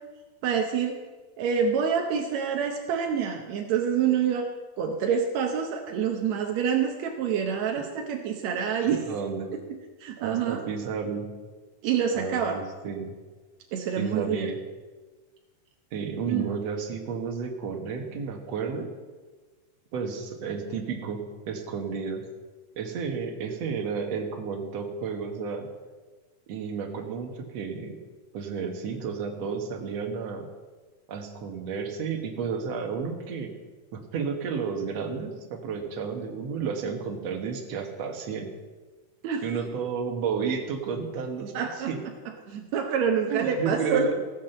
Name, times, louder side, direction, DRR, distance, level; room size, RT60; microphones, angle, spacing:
voice 1, 0.4-1.0 1.4-4.5 4.8-9.1 10.0-10.6 11.8-12.6 13.7-14.5 16.3-16.5 39.2-39.4 41.5-41.9 42.5-44.1, right 7 dB, 75° right, 3 dB, 1.6 m, -26 dB
voice 2, 9.1-9.5 10.2-11.3 12.1-13.2 14.0-14.6 15.9-18.9 19.9-22.2 22.8-25.7 26.5-27.9 28.3-30.5 31.1-33.5 33.9-38.5 39.4-42.0 43.3-44.1, right 5 dB, 55° right, 3 dB, 2.1 m, -32 dB
16.0 x 7.5 x 6.6 m, 1.3 s
omnidirectional pair, 4.2 m